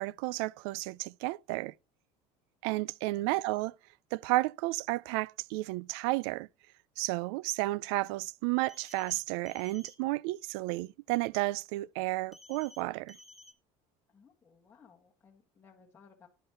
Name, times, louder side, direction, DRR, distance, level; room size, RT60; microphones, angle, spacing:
voice 1, 0.0-1.7 2.6-3.7 4.1-6.5 7.0-13.2, right 19 dB, 85° right, 0.4 m, -32 dB
sound 1, 8.7-9.2 9.5-9.9 12.3-12.8 13.1-13.5, left 2 dB, ahead, 2.0 m, -54 dB
voice 2, 14.1-16.3, left 5 dB, 15° left, 1.5 m, -60 dB
10.5 x 5.5 x 5.6 m
cardioid pair, 150°, 13 cm